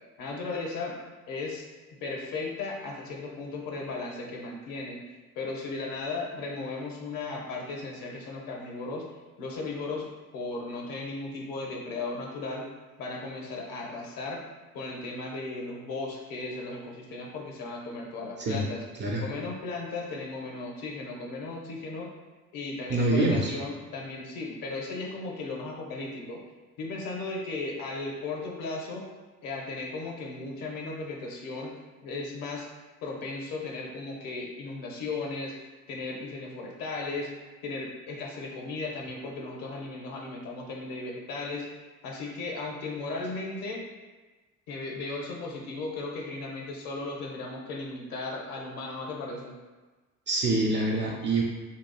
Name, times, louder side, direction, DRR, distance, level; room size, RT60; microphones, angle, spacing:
voice 1, 0.2-1.0 1.3-1.6 2.0-5.0 5.4-9.1 9.4-10.1 10.3-12.6 13.0-14.4 14.7-18.8 19.2-22.1 22.5-26.4 26.8-29.0 29.4-31.7 32.0-32.7 33.0-35.5 35.9-43.8 44.7-49.5, left 3 dB, 50° left, -1 dB, 0.7 m, -36 dB
voice 2, 22.9-23.5 50.3-51.4, right 2 dB, 30° right, -1 dB, 0.4 m, -25 dB
2.9 x 2.3 x 2.2 m, 1.3 s
figure-of-eight pair, 50°, 44 cm